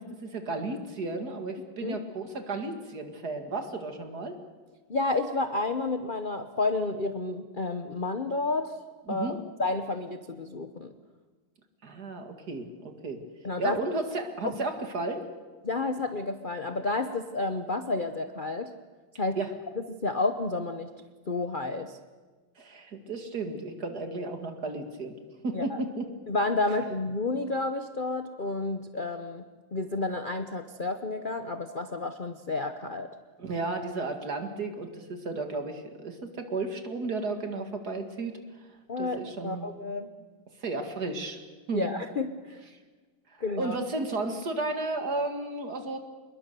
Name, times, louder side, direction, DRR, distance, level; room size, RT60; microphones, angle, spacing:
voice 1, 0.0-4.4 9.1-9.4 11.8-13.2 13.6-15.2 19.4-19.5 22.6-25.2 25.4-26.1 33.4-38.3 39.0-39.7 40.6-41.4 41.7-41.9 43.3-46.0, right 3 dB, 45° right, 5 dB, 2.5 m, -33 dB
voice 2, 4.9-8.7 9.1-10.9 13.4-13.8 14.4-14.6 15.6-18.7 19.2-19.4 20.0-20.9 21.3-22.0 25.5-25.8 26.3-29.4 29.7-33.1 38.9-40.1 41.7-42.6 43.4-43.8, left 3 dB, 75° left, 8 dB, 0.4 m, -30 dB
27.0 x 21.5 x 6.9 m, 1.4 s
omnidirectional pair, 2.4 m